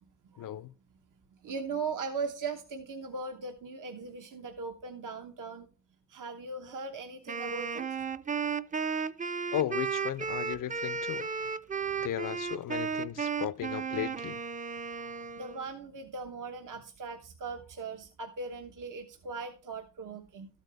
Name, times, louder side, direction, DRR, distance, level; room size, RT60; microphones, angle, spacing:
voice 1, 0.4-0.7 9.5-11.3 12.0-14.4, left 11 dB, 85° left, 0.5 m, -35 dB
voice 2, 1.4-5.7 6.1-7.9 11.9-12.0 15.0-20.5, right 4 dB, 80° right, 1.1 m, -39 dB
Wind instrument woodwind instrument, 7.3-15.7, right 6 dB, 25° right, 0.4 m, -34 dB
13.5 x 8.1 x 3.4 m
wide cardioid pair, 140°, 31 cm